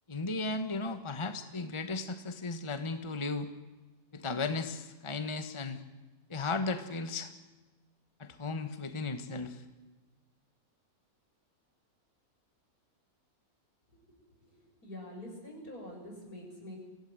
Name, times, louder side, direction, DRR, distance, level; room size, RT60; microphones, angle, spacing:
voice 1, 0.1-3.5 4.1-5.8 6.3-7.3 8.2-9.6, left 3 dB, 20° left, 9 dB, 1.4 m, -35 dB
voice 2, 14.4-16.8, left 1 dB, 80° left, 0 dB, 7.7 m, -46 dB
25.0 x 16.5 x 9.5 m, 1.2 s
omnidirectional pair, 1.6 m